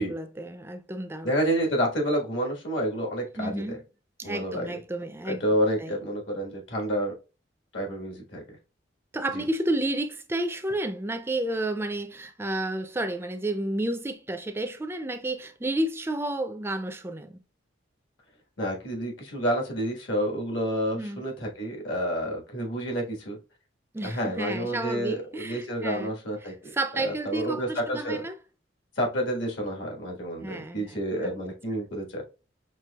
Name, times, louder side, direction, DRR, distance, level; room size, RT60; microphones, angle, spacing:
voice 1, 0.0-1.3 3.4-3.8 4.2-5.4 5.8-5.9 9.1-17.4 20.9-21.2 23.9-26.2 26.4-28.3 30.4-31.3, right 1 dB, 10° right, 0.3 m, -31 dB
voice 2, 1.2-3.8 4.2-4.8 5.3-7.1 7.7-8.6 9.3-9.4 18.6-23.4 24.0-28.3 29.0-32.2, equal, 75° left, 1.5 m, -29 dB
6.0 x 2.7 x 2.2 m
head